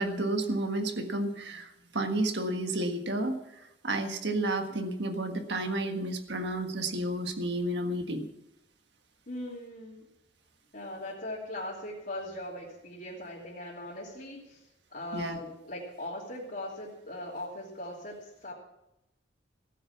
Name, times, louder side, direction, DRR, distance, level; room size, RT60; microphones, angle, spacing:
voice 1, 0.0-8.3 15.1-15.4, right 1 dB, 65° right, 6 dB, 1.6 m, -31 dB
voice 2, 9.3-10.1 10.7-14.6 14.9-18.5, left 1 dB, 50° left, -7 dB, 3.0 m, -40 dB
16.5 x 9.4 x 7.3 m, 0.86 s
head